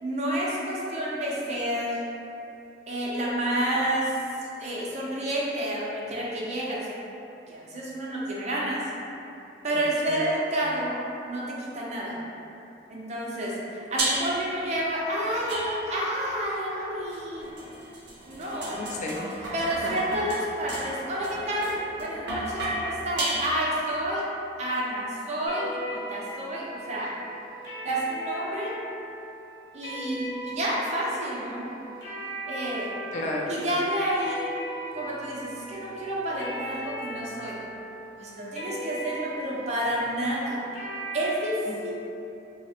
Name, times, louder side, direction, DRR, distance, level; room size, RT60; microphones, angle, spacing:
voice 1, 0.0-2.0 2.9-4.1 4.4-6.9 7.5-8.8 9.6-12.2 12.9-17.6 18.3-18.8 19.5-24.3 24.6-27.1 27.8-28.7 29.7-31.7 32.5-33.0 33.5-34.5 34.9-37.6 38.2-40.6 41.1-41.9, right 1 dB, 40° right, -5 dB, 0.5 m, -29 dB
sound 1, 14.0-14.5 15.5-16.2 17.1-23.9, right 2 dB, 90° right, 0.5 m, -33 dB
voice 2, 18.7-19.5 33.1-33.5 41.7-41.9, left 1 dB, 45° left, -2 dB, 0.3 m, -33 dB
sound 2, 25.5-41.3, equal, 75° left, 0.8 m, -39 dB
3.2 x 2.0 x 2.7 m, 2.8 s
head